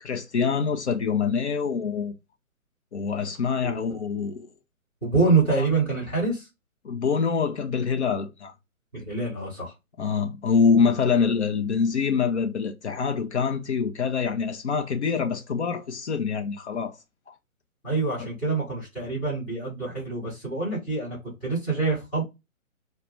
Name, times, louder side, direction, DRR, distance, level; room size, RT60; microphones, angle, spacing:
voice 1, 0.0-2.1 2.9-4.5 5.5-5.7 6.8-8.5 10.0-17.0 18.2-18.3, left 5 dB, 55° left, 0.5 m, -25 dB
voice 2, 5.0-6.4 8.9-9.7 17.8-21.2 21.4-22.2, right 3 dB, 5° left, 0.5 m, -26 dB
2.3 x 2.1 x 3.0 m
figure-of-eight pair, 145°, 43 cm